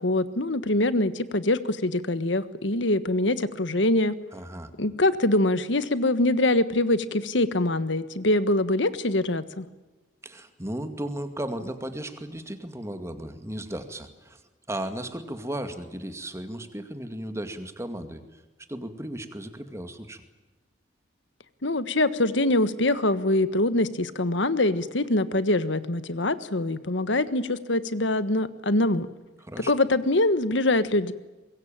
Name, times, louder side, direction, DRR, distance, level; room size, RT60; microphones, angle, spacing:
voice 1, 0.0-4.1 4.8-9.7 21.6-29.1 29.7-31.1, left 2 dB, 75° left, 13 dB, 1.5 m, -24 dB
voice 2, 4.3-4.7 10.2-14.4 14.7-18.4 18.7-20.2 29.4-29.7, right 1 dB, 15° right, 8 dB, 2.2 m, -35 dB
24.5 x 22.0 x 8.9 m, 1.1 s
head